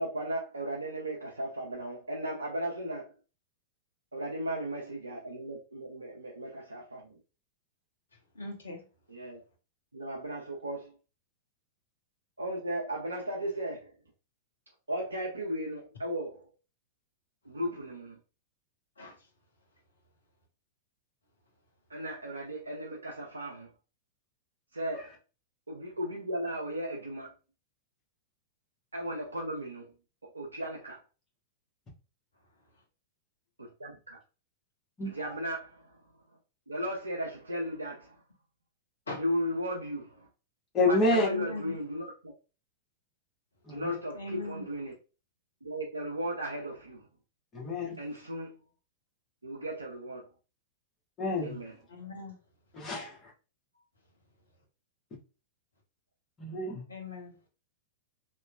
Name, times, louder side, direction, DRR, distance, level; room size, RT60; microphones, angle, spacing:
voice 1, 0.0-3.0 4.1-7.1 9.1-9.4 9.9-10.9 12.4-13.9 14.9-16.3 17.5-18.2 21.9-23.7 24.7-25.1 25.7-27.3 28.9-29.9 30.3-31.0 33.8-34.2 35.1-35.7 36.7-38.1 39.2-40.2 40.9-42.3 43.7-44.9 45.6-47.0 48.0-48.5 49.4-50.3 51.4-51.7, right 1 dB, 80° right, 0.5 m, -36 dB
voice 2, 8.3-8.8 19.0-19.1 39.1-39.2 41.1-41.7 44.1-44.7 51.9-52.4 56.9-57.4, left 2 dB, 75° left, 0.8 m, -39 dB
voice 3, 40.7-41.3 43.7-43.9 47.5-47.9 51.2-51.5 52.7-53.2 56.4-56.8, left 2 dB, 25° left, 1.1 m, -28 dB
2.9 x 2.2 x 2.2 m
figure-of-eight pair, 95°, 0 cm